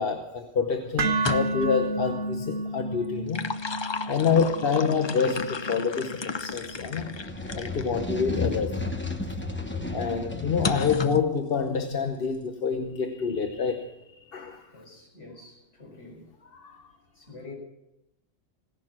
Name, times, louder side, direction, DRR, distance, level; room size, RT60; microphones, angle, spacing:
voice 1, 0.0-3.5 4.1-7.2 7.5-8.8 9.8-14.7 16.5-16.8, left 6 dB, 55° left, 1.1 m, -27 dB
sound 1, 1.0-9.1, right 2 dB, 70° right, 1.1 m, -33 dB
sound 2, 1.2-1.8 3.0-7.9 8.5-8.6 10.6-11.3, left 4 dB, 35° left, 0.4 m, -33 dB
sound 3, 3.3-3.6 4.3-4.5 6.6-11.0, left 2 dB, 10° left, 1.0 m, -33 dB
voice 2, 14.7-16.3 17.1-17.5, left 3 dB, 85° left, 5.3 m, -46 dB
17.0 x 11.0 x 6.0 m
omnidirectional pair, 1.2 m